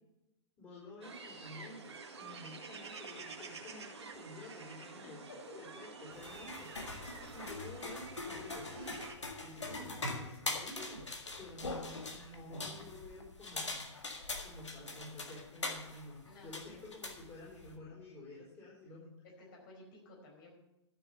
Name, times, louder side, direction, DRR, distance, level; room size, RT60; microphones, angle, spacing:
voice 1, 0.6-1.8 2.2-5.2 5.5-9.0 9.3-11.1 11.4-13.9 14.4-19.2, left 2 dB, 25° left, -6 dB, 4.8 m, -51 dB
sound 1, 1.0-9.1, right 4 dB, 65° right, 1.8 m, -49 dB
sound 2, 6.1-17.8, left 2 dB, 80° left, 1.8 m, -43 dB
voice 2, 16.2-16.8 18.1-18.2 19.4-20.5, left 2 dB, 50° left, -1 dB, 4.8 m, -55 dB
12.5 x 7.1 x 6.8 m, 0.92 s
figure-of-eight pair, 110°, 15 cm